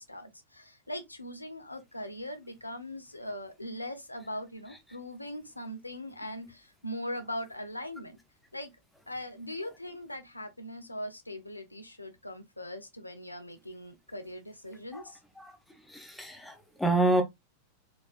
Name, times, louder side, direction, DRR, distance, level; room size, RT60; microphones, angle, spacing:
voice 1, 0.0-8.2 8.5-8.7 9.1-15.2, left 1 dB, 85° left, 0.7 m, -40 dB
voice 2, 15.9-17.2, right 2 dB, 5° left, 0.6 m, -27 dB
4.1 x 2.6 x 2.4 m
figure-of-eight pair, 90°, 0 cm